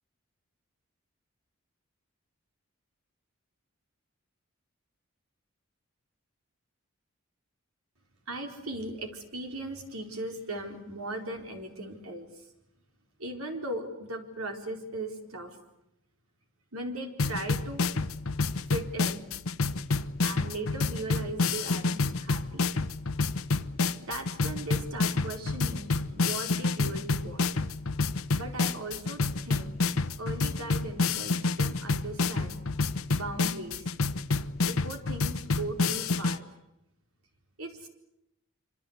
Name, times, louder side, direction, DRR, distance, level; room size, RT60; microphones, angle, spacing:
voice 1, 8.3-12.5 13.2-15.6 16.7-17.8 18.7-19.3 20.2-22.6 24.0-27.5 28.4-29.8 30.2-32.6 33.1-33.9 34.6-36.4 37.6-37.9, right 2 dB, 85° right, 4 dB, 4.3 m, -38 dB
sound 1, 17.2-36.4, left 3 dB, 75° left, 1.0 m, -29 dB
26.5 x 25.5 x 8.2 m, 0.84 s
head